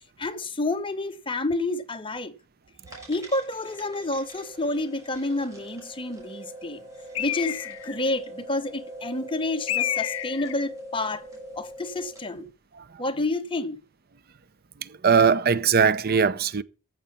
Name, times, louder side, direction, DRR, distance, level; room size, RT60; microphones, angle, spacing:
voice 1, 0.2-2.3 3.1-6.8 7.2-11.3 11.5-12.5 13.0-13.8, left 2 dB, 25° left, 1.0 m, -29 dB
sound 1, 2.8-12.4, right 1 dB, 15° right, 6.6 m, -42 dB
Bird, 7.2-8.0 9.7-10.6, left 12 dB, 65° left, 0.6 m, -29 dB
voice 2, 15.0-16.6, right 6 dB, 45° right, 0.6 m, -20 dB
14.5 x 7.6 x 5.7 m
head